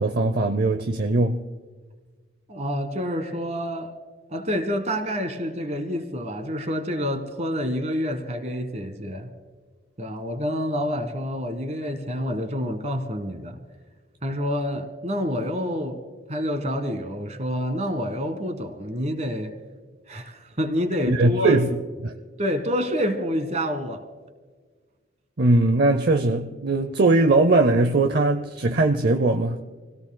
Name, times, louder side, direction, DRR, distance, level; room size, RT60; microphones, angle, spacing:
voice 1, 0.0-1.4 21.1-21.7 22.0-22.1 25.4-29.6, right 2 dB, 55° right, 7 dB, 0.6 m, -20 dB
voice 2, 2.5-3.9 4.3-9.3 10.0-13.6 14.2-16.0 16.3-19.5 20.1-21.6 22.4-24.0, equal, 35° right, 9 dB, 1.5 m, -28 dB
28.0 x 17.0 x 2.2 m, 1.5 s
head